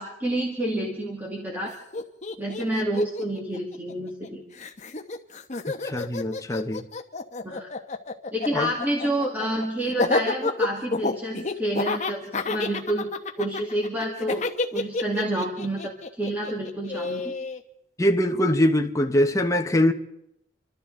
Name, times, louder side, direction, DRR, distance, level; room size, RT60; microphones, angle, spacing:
voice 1, 0.0-1.8 2.4-4.4 7.4-7.7 8.3-13.1 13.4-17.3, right 1 dB, 10° right, 2.0 m, -29 dB
Laughter, 1.6-1.7 1.9-4.3 4.6-17.6, left 3 dB, 40° left, 1.0 m, -29 dB
voice 2, 5.7-6.8 8.5-8.7 18.0-19.9, left 1 dB, 15° left, 1.0 m, -22 dB
27.5 x 12.5 x 3.8 m
head